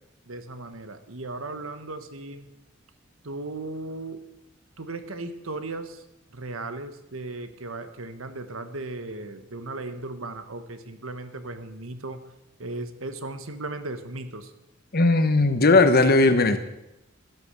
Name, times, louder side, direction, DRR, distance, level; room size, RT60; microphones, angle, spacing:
voice 1, 0.3-2.5 3.2-4.2 4.8-6.0 6.3-12.2 12.6-14.5, right 2 dB, 80° right, 9 dB, 1.4 m, -36 dB
voice 2, 14.9-16.6, left 2 dB, 50° left, 10 dB, 1.2 m, -18 dB
13.5 x 10.5 x 6.8 m, 0.91 s
head